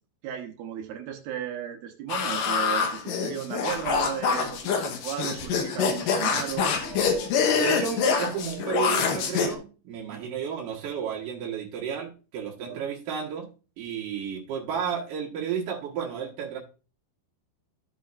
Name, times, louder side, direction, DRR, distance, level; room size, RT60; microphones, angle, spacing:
voice 1, 0.2-7.3 10.1-10.3 12.6-12.8, right 9 dB, 80° right, 3 dB, 2.9 m, -35 dB
sound 1, 2.1-9.5, left 6 dB, 70° left, 2.7 m, -26 dB
voice 2, 7.5-13.5 13.8-16.6, right 7 dB, 65° right, -3 dB, 3.0 m, -32 dB
15.0 x 5.1 x 2.6 m, 0.34 s
omnidirectional pair, 4.3 m